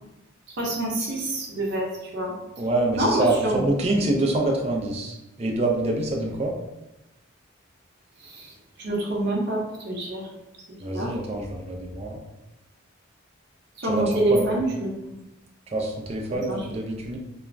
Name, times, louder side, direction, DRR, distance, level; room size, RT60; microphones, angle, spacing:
voice 1, 0.6-2.3 2.9-3.6 8.2-8.5 8.8-10.2 10.9-11.1 13.8-15.1 16.5-16.6, right 1 dB, 55° right, -2 dB, 0.7 m, -26 dB
voice 2, 2.6-6.5 10.8-12.2 13.8-14.5 15.7-17.2, right 2 dB, 30° right, 0 dB, 0.3 m, -26 dB
2.4 x 2.0 x 3.2 m, 0.93 s
head